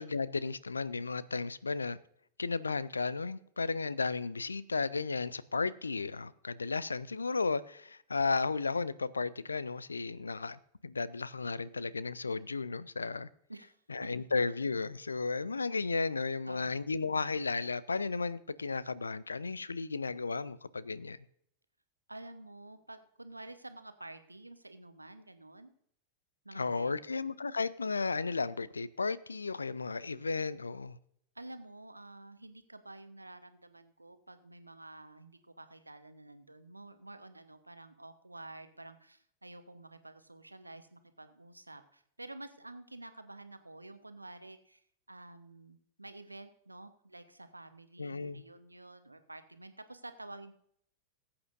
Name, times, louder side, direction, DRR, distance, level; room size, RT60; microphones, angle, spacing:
voice 1, 0.0-2.0 2.4-13.3 13.9-21.2 26.6-31.0 48.0-48.4, left 4 dB, 75° left, 0.5 m, -34 dB
voice 2, 13.5-14.1 16.4-16.8 22.1-25.7 26.4-27.0 31.3-50.5, right 2 dB, 85° right, 1.0 m, -50 dB
20.0 x 8.6 x 2.6 m
figure-of-eight pair, 90°, 0 cm